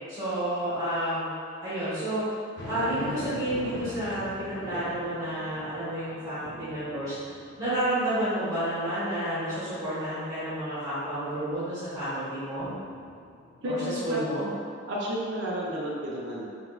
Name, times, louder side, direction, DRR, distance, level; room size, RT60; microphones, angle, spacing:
voice 1, 0.1-1.3 1.6-2.2 2.7-7.2 7.6-12.7 13.6-14.5, right 1 dB, 20° right, -14 dB, 1.2 m, -30 dB
sound 1, 2.5-8.1 8.6-8.7 12.6-13.7, left 1 dB, 60° left, 0.5 m, -41 dB
voice 2, 13.6-14.3 14.9-16.4, equal, 60° right, -5 dB, 0.5 m, -31 dB
3.7 x 2.1 x 2.2 m, 2.3 s
head